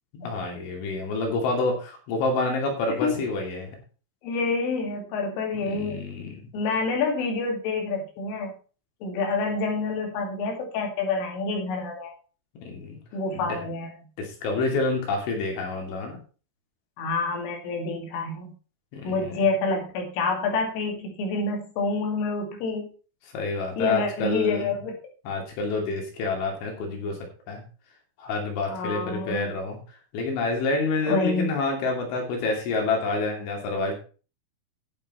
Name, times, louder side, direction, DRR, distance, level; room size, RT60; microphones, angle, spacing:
voice 1, 0.1-3.8 5.7-6.4 12.6-13.0 14.2-16.2 18.9-19.4 23.3-24.7 25.3-27.2 27.5-27.6 28.2-29.8 30.1-34.0, left 3 dB, 75° left, 1 dB, 5.2 m, -28 dB
voice 2, 4.2-6.1 6.5-8.5 9.0-12.1 13.1-13.9 17.0-18.5 19.0-22.9 23.8-24.9 28.7-29.5 31.1-31.5, left 3 dB, 90° left, 1 dB, 5.0 m, -28 dB
10.5 x 8.9 x 4.3 m, 0.37 s
omnidirectional pair, 5.5 m